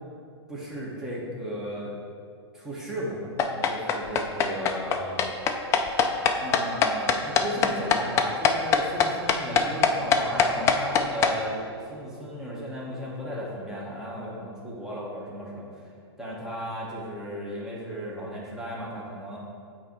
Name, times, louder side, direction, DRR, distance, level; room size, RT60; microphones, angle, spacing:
voice 1, 0.5-1.9 2.5-5.2 6.3-15.8 16.2-19.4, equal, 5° right, -6 dB, 1.2 m, -35 dB
sound 1, 3.4-11.3, left 6 dB, 20° left, 0.3 m, -22 dB
7.9 x 2.9 x 4.5 m, 2.3 s
hypercardioid pair, 130°, 14 cm